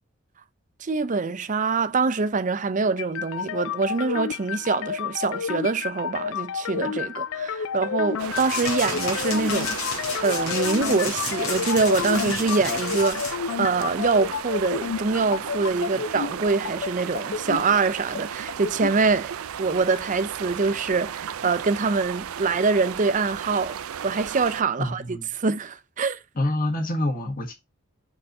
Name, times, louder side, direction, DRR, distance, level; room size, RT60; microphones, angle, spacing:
voice 1, 0.8-19.3 19.6-23.8 24.0-26.2, right 4 dB, 35° right, 0.5 m, -24 dB
sound 1, 3.0-19.0, left 7 dB, 65° left, 0.3 m, -31 dB
sound 2, 8.2-24.6, right 8 dB, 85° right, 0.4 m, -35 dB
sound 3, 8.4-13.3, left 5 dB, 90° left, 1.6 m, -32 dB
voice 2, 24.8-25.3 26.3-27.5, left 1 dB, 40° left, 1.6 m, -26 dB
4.5 x 3.9 x 5.4 m
head